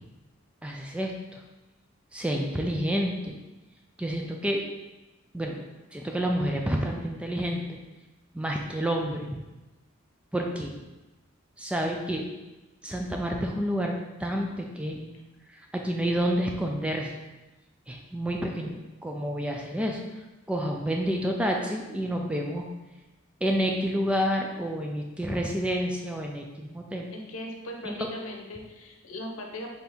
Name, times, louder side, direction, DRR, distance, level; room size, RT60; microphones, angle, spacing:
voice 1, 0.6-1.4 2.1-3.4 4.0-4.6 5.3-5.7 5.9-7.8 8.3-9.3 10.3-10.8 11.6-12.2 12.8-13.9 14.2-15.2 15.5-17.2 17.9-20.0 20.5-22.6 23.4-27.1 27.9-28.1, equal, 5° right, 1 dB, 0.3 m, -29 dB
voice 2, 27.1-29.7, left 1 dB, 80° left, 2 dB, 0.8 m, -39 dB
4.2 x 3.4 x 3.5 m, 1.1 s
head